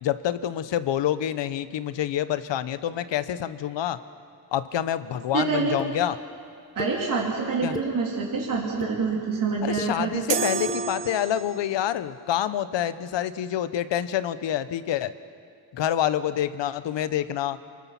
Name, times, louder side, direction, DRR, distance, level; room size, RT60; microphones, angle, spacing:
voice 1, 0.0-4.0 4.5-6.2 7.6-7.8 9.6-15.1 15.7-17.6, left 11 dB, 85° left, 13 dB, 1.0 m, -27 dB
voice 2, 5.3-5.8 6.7-10.4, right 4 dB, 50° right, -4 dB, 3.4 m, -26 dB
sound 1, 5.8-5.9 6.8-6.9 7.5-7.9 8.5-8.9 9.6-9.9 10.6-10.8, left 2 dB, 10° left, 1.3 m, -36 dB
sound 2, 10.3-11.8, right 7 dB, 75° right, 1.2 m, -30 dB
28.5 x 21.5 x 6.0 m, 2.3 s
wide cardioid pair, 135°, 43 cm